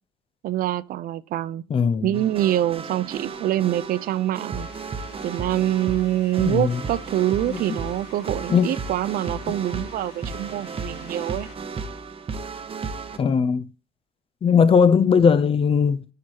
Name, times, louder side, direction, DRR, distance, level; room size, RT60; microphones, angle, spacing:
voice 1, 0.4-1.6 2.0-4.7 5.2-11.5, right 13 dB, 60° right, 0.4 m, -25 dB
voice 2, 1.7-2.1 6.4-6.8 7.5-7.8 8.5-8.7 13.2-13.7 14.4-16.1, left 6 dB, 35° left, 0.5 m, -19 dB
sound 1, 2.1-13.2, right 4 dB, 35° right, 0.8 m, -34 dB
sound 2, 4.5-11.5, left 6 dB, 75° left, 1.7 m, -49 dB
10.5 x 4.7 x 2.8 m
cardioid pair, 110°, 17 cm